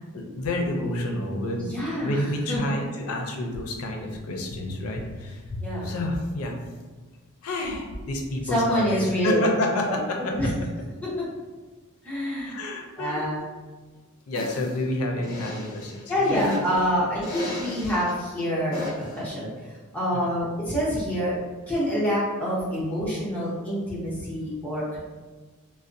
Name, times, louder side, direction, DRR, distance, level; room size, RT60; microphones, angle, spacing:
voice 1, 0.1-1.6 2.0-6.6 7.4-10.3 12.4-13.2 14.3-16.5 20.1-20.3, left 1 dB, 80° left, 1 dB, 0.5 m, -29 dB
voice 2, 1.6-2.7 5.6-5.9 8.4-9.4 9.9-10.0 10.3-10.5 11.0-11.1 12.0-12.6 13.0-13.4 16.1-19.5 19.9-21.3 21.7-25.0, equal, 5° left, -8 dB, 0.7 m, -26 dB
sound 1, 14.3-14.7 15.2-16.8 17.2-18.1 18.7-19.2, left 2 dB, 45° left, 0.7 m, -34 dB
2.5 x 2.1 x 2.5 m, 1.3 s
head